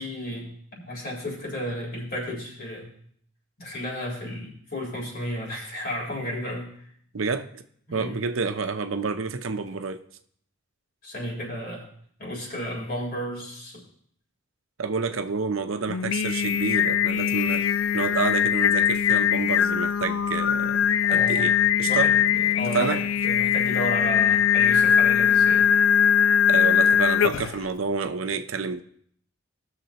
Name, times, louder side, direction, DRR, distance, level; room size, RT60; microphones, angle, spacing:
voice 1, 0.0-2.9 3.6-6.7 7.9-8.2 11.0-11.8 12.2-13.8 21.1-21.5 21.8-25.7, left 1 dB, 50° left, 3.8 m, -33 dB
voice 2, 7.1-7.6 7.9-10.0 14.8-20.8 21.1-22.1 22.7-23.0 26.5-28.8, right 4 dB, 85° right, 0.7 m, -29 dB
Singing, 15.9-27.6, left 8 dB, 75° left, 0.3 m, -21 dB
19.0 x 6.5 x 2.9 m
head